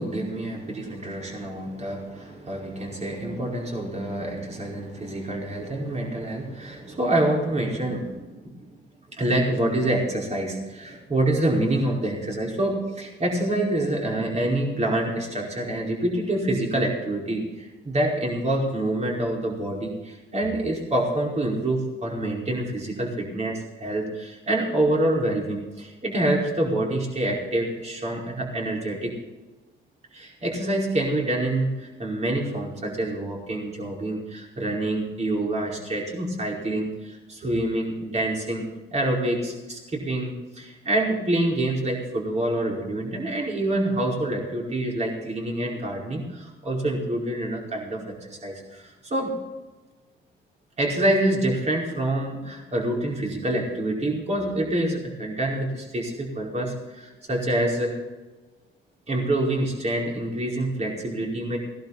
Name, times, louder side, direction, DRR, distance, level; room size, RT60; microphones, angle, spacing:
voice 1, 0.0-8.7 9.1-29.1 30.1-49.3 50.8-58.0 59.1-61.6, right 1 dB, 35° right, -2 dB, 5.0 m, -26 dB
18.5 x 11.5 x 4.2 m, 1.2 s
cardioid pair, 90°, 20 cm